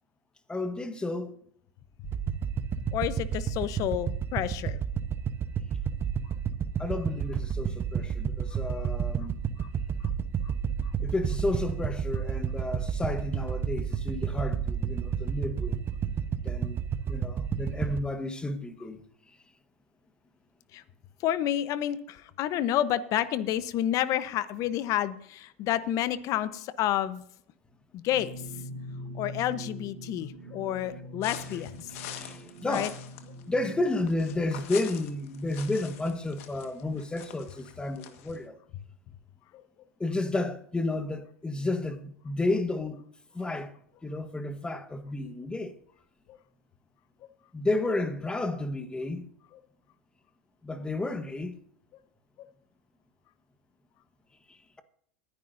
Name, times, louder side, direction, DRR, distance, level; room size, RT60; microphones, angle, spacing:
voice 1, 0.5-1.4 6.8-9.4 11.0-15.8 16.4-16.8 17.1-19.0 32.1-32.9 33.4-38.6 40.0-43.0 43.3-43.7 44.0-45.7 47.5-49.3 50.6-51.6 54.5-54.8, left 2 dB, 10° left, 1.4 m, -32 dB
sound 1, 2.0-18.0, right 7 dB, 30° right, 1.0 m, -31 dB
voice 2, 2.9-4.8 10.4-10.5 10.8-10.9 20.7-20.8 21.2-27.2 27.9-28.3 29.1-31.9 32.6-32.9, left 12 dB, 50° left, 1.0 m, -29 dB
sound 2, 28.1-33.9, equal, 75° right, 1.5 m, -43 dB
sound 3, 31.2-38.4, left 10 dB, 75° left, 1.6 m, -44 dB
20.5 x 10.0 x 2.7 m
hypercardioid pair, 100°, 7 cm